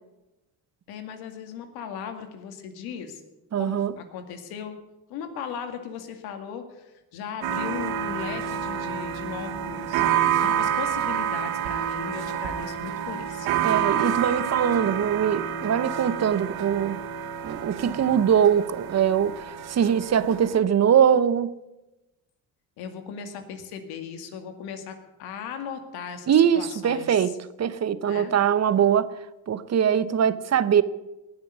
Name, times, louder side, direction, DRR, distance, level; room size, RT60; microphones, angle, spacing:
voice 1, 0.9-3.2 3.6-4.8 5.1-10.0 10.4-13.5 22.8-27.4 28.1-28.3, left 7 dB, 85° left, 2.2 m, -37 dB
voice 2, 3.5-4.0 13.6-17.1 17.4-21.5 26.3-29.1 29.5-30.8, right 8 dB, 45° right, 0.9 m, -22 dB
sound 1, 7.4-20.6, right 9 dB, 85° right, 1.6 m, -28 dB
20.0 x 6.8 x 9.6 m
supercardioid pair, 75°, 36 cm